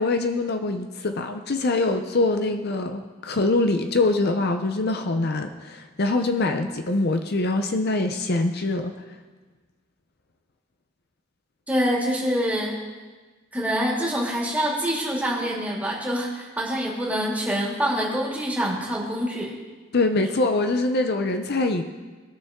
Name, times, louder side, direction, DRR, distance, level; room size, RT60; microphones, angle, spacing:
voice 1, 0.0-8.9 19.9-21.8, left 2 dB, 55° left, 6 dB, 0.7 m, -24 dB
voice 2, 11.7-12.8 13.5-19.5, equal, 10° right, -4 dB, 2.2 m, -25 dB
20.0 x 6.8 x 3.6 m, 1.3 s
head